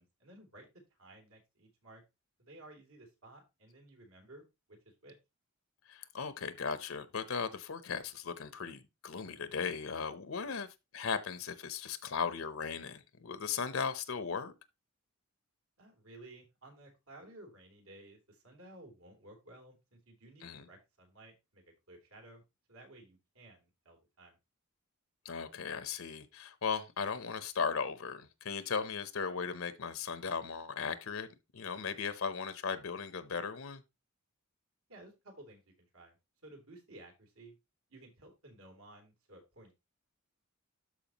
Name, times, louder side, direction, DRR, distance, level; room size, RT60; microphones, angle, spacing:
voice 1, 0.0-2.0 2.4-5.1 10.4-10.6 15.8-22.4 22.7-24.4 34.9-36.2 36.4-37.5 37.9-39.7, right 1 dB, 75° right, 3.3 m, -55 dB
voice 2, 5.9-10.7 10.9-14.5 20.4-20.7 25.2-31.3 31.5-33.8, left 5 dB, 70° left, 0.8 m, -37 dB
12.5 x 4.6 x 2.9 m
head